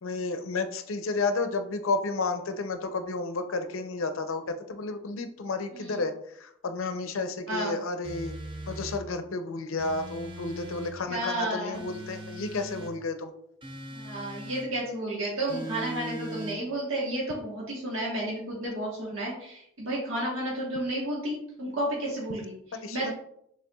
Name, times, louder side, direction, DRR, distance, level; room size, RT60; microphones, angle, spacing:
voice 1, 0.0-8.4 8.7-13.3 22.7-23.1, left 3 dB, 75° left, 8 dB, 0.5 m, -32 dB
sound 1, 8.0-9.0 9.8-11.0 11.7-12.9 13.6-14.7 15.5-16.6, right 1 dB, 25° right, 0.6 m, -40 dB
voice 2, 11.1-11.8 13.9-22.5 22.9-23.1, right 1 dB, 75° right, -4 dB, 1.2 m, -32 dB
6.5 x 3.4 x 2.3 m, 0.72 s
head